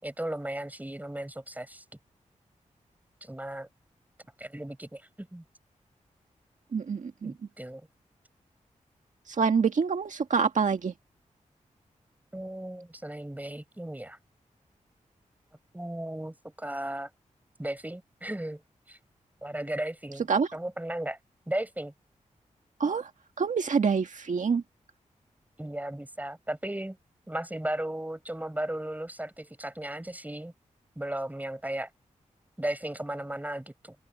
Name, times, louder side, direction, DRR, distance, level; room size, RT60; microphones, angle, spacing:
voice 1, 0.0-1.8 3.2-3.7 4.4-5.4 7.2-7.8 12.3-14.2 15.7-17.1 17.6-18.6 18.9-19.0 19.4-20.3 20.5-21.2 21.5-21.9 25.6-27.0 27.3-30.5 31.0-31.9 32.6-33.9, right 1 dB, 10° right, 6.0 m, -35 dB
voice 2, 6.7-7.3 9.3-10.9 20.3-20.5 22.8-23.1 23.4-24.6, right 5 dB, 70° right, 1.8 m, -26 dB
open air
cardioid pair, 65°, 13 cm